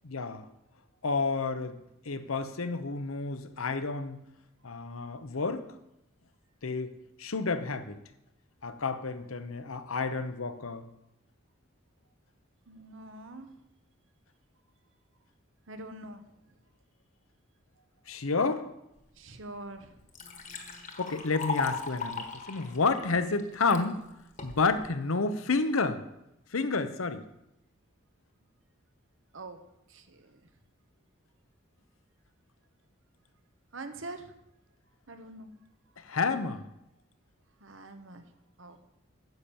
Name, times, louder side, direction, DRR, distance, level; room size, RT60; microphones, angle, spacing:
voice 1, 0.0-0.4 1.0-1.8 2.1-4.2 4.6-5.6 6.6-6.9 7.2-8.0 8.6-10.8 18.1-18.7 21.0-24.0 24.4-26.0 26.5-27.2 36.1-36.6, left 4 dB, 85° left, 10 dB, 0.9 m, -30 dB
voice 2, 12.7-13.5 15.7-16.2 19.2-19.9 29.3-29.6 29.9-30.4 33.7-34.3 35.1-35.5 37.6-38.2 38.6-38.8, right 2 dB, 70° right, 8 dB, 1.0 m, -44 dB
Liquid, 19.3-19.4 19.8-23.8 24.4-24.9, left 4 dB, 35° left, 1.3 m, -37 dB
9.8 x 7.2 x 7.1 m, 0.86 s
head